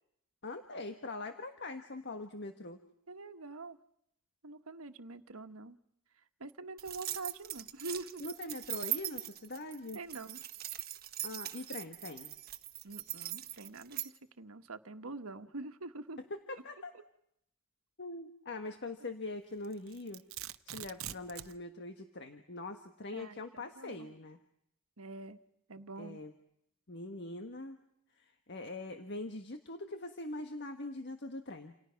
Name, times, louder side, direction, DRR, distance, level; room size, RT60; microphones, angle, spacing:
voice 1, 0.4-2.8 8.2-10.0 11.2-12.3 16.2-16.9 18.0-20.2 20.7-24.4 26.0-26.3 26.9-27.8 28.2-31.7, left 2 dB, 55° left, 7 dB, 1.6 m, -43 dB
voice 2, 3.1-3.8 4.4-5.8 6.4-8.2 9.9-10.4 12.8-16.2 23.1-24.1 25.0-25.4 25.7-26.2, right 3 dB, 85° right, 9 dB, 1.4 m, -45 dB
sound 1, 6.8-14.1, right 13 dB, 45° right, 1.3 m, -41 dB
Domestic sounds home sounds, 19.6-21.6, right 12 dB, 65° right, 0.9 m, -44 dB
29.0 x 28.5 x 5.9 m, 0.76 s
head